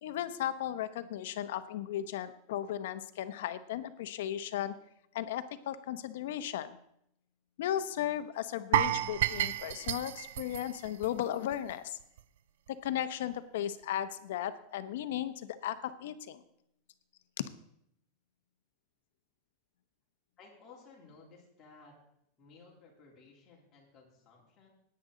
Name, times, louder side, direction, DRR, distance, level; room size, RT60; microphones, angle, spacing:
voice 1, 0.0-4.7 5.1-6.8 7.6-12.0 12.7-16.4 17.4-17.5, left 11 dB, 70° left, 12 dB, 0.9 m, -36 dB
sound 1, 8.7-11.7 12.0-12.2 12.7-12.8, right 12 dB, 70° right, 0.5 m, -31 dB
voice 2, 20.4-22.0 22.4-24.7, left 4 dB, 20° left, -4 dB, 3.4 m, -57 dB
16.0 x 9.6 x 3.9 m, 0.74 s
supercardioid pair, 170°, 0 cm